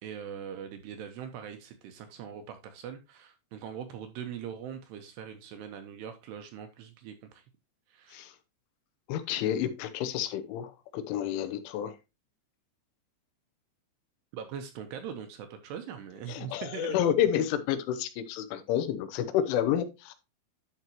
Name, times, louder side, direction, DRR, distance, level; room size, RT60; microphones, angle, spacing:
voice 1, 0.0-7.4 7.9-8.3 14.3-17.0, right 8 dB, 80° right, 2.6 m, -41 dB
voice 2, 9.1-12.0 16.3-20.1, left 10 dB, 90° left, 3.3 m, -30 dB
10.5 x 5.8 x 3.0 m
omnidirectional pair, 5.4 m